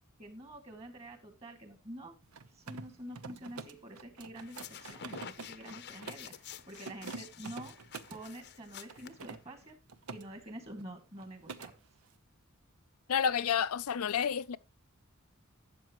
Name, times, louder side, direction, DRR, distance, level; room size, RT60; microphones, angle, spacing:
voice 1, 0.2-2.2 2.5-6.3 6.7-7.8 8.1-9.8 10.1-11.7, right 1 dB, 30° right, 2.3 m, -47 dB
Mechanisms, 2.2-6.3 6.7-8.2 8.9-10.2 10.5-10.9 11.2-11.7, right 4 dB, 85° right, 0.9 m, -46 dB
sound 1, 4.4-9.7, left 8 dB, 50° left, 0.7 m, -49 dB
voice 2, 13.1-14.6, left 7 dB, 85° left, 0.5 m, -30 dB
12.0 x 7.8 x 3.0 m
head